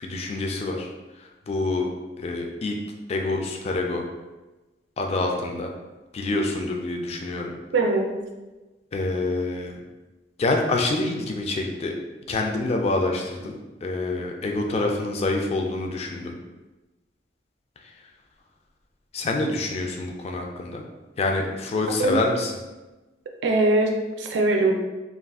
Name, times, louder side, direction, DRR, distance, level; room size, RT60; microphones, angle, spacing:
voice 1, 0.0-0.9 1.5-1.9 2.2-2.8 3.1-4.0 5.0-5.7 6.1-7.5 8.9-9.8 10.4-12.0 12.3-16.3 19.1-20.8 21.2-22.5, left 2 dB, 35° left, 2 dB, 0.3 m, -26 dB
voice 2, 7.7-8.1 22.0-22.2 23.4-24.7, right 2 dB, 85° right, 2 dB, 0.4 m, -21 dB
2.4 x 2.3 x 3.5 m, 1.1 s
head